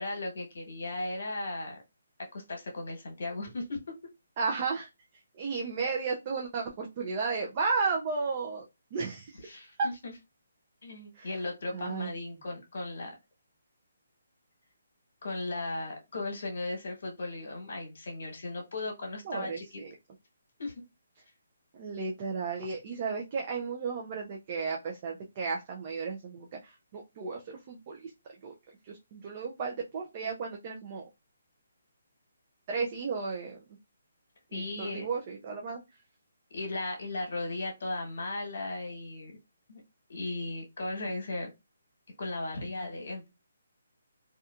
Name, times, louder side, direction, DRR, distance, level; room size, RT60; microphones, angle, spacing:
voice 1, 0.0-1.8 2.2-3.8 9.4-10.1 10.8-13.1 15.2-19.6 20.6-20.7 34.5-35.1 36.5-39.3 39.7-39.8 40.1-41.5 42.2-43.3, left 2 dB, 55° left, 2 dB, 1.1 m, -36 dB
voice 2, 4.4-4.9 5.3-9.7 11.1-11.3 11.7-12.1 19.2-19.9 21.7-28.1 28.4-28.5 28.9-31.0 32.7-33.6 34.5-35.8, right 4 dB, 25° right, 0 dB, 0.3 m, -34 dB
2.8 x 2.2 x 2.4 m, 0.23 s
hypercardioid pair, 175°, 0 cm